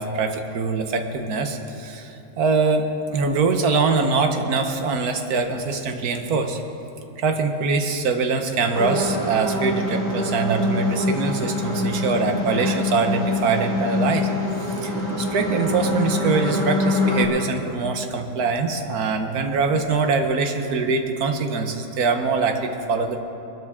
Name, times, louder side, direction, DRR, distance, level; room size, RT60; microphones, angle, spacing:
voice 1, 0.0-2.9 3.1-6.6 7.2-14.3 14.6-23.2, right 4 dB, 75° right, 6 dB, 1.5 m, -23 dB
sound 1, 8.7-17.2, left 2 dB, 20° left, 2.7 m, -24 dB
21.0 x 12.0 x 3.6 m, 2.9 s
omnidirectional pair, 1.7 m